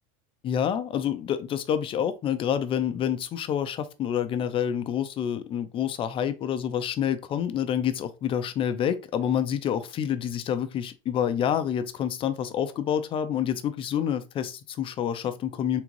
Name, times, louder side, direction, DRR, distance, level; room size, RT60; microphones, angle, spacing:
voice 1, 0.4-15.8, left 9 dB, 30° left, 0.4 m, -28 dB
3.8 x 3.5 x 3.1 m
supercardioid pair, 145°, 18 cm